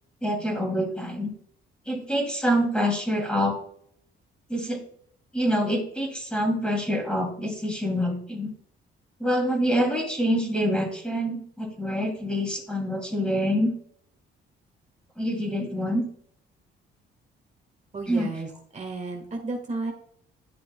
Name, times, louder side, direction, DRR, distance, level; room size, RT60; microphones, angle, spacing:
voice 1, 0.2-1.3 1.9-3.5 4.5-4.8 5.3-8.5 9.2-13.7 15.2-16.0 18.1-18.3, equal, 5° left, 2 dB, 2.6 m, -26 dB
voice 2, 17.9-19.9, right 3 dB, 35° right, 2 dB, 1.6 m, -33 dB
11.5 x 6.0 x 2.2 m, 0.65 s
cardioid pair, 90°, 20 cm